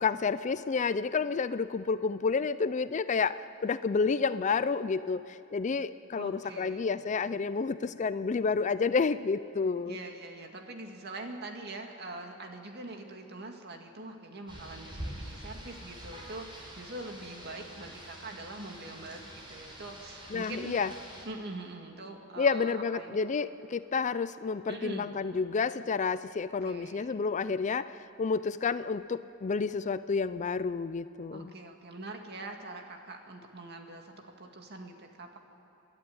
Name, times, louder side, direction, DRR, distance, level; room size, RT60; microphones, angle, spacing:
voice 1, 0.0-3.4 3.6-5.2 5.5-10.0 20.3-20.9 22.4-27.9 28.2-31.5, left 5 dB, 35° left, 14 dB, 0.4 m, -30 dB
voice 2, 6.1-7.0 9.9-20.9 21.2-23.2 24.7-25.1 26.6-27.2 31.3-35.4, right 2 dB, 55° right, 3 dB, 2.1 m, -43 dB
Rain, 14.5-21.3, equal, 25° right, 4.5 m, -45 dB
28.5 x 11.5 x 9.5 m, 2.8 s
head